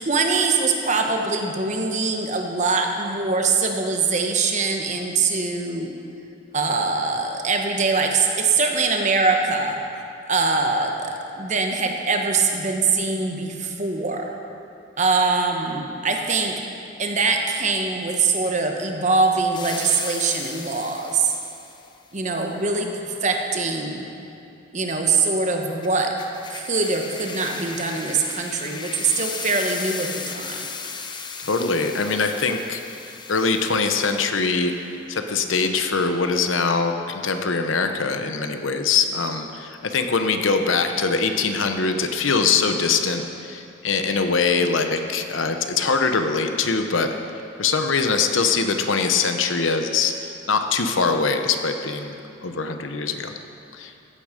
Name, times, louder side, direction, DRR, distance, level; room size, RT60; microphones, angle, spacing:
voice 1, 0.0-5.9 6.5-9.8 10.3-14.3 15.0-16.5 17.0-21.3 22.1-24.1 24.7-26.1 26.5-30.6, right 4 dB, 40° right, 3 dB, 1.1 m, -23 dB
sound 1, 19.5-21.9 25.8-34.8, left 5 dB, 25° left, 0.7 m, -36 dB
voice 2, 31.4-32.8 33.3-34.7 35.1-47.1 47.6-50.1 50.5-53.3 53.7-53.9, left 4 dB, 80° left, 6 dB, 0.9 m, -22 dB
15.0 x 8.8 x 5.1 m, 2.6 s
head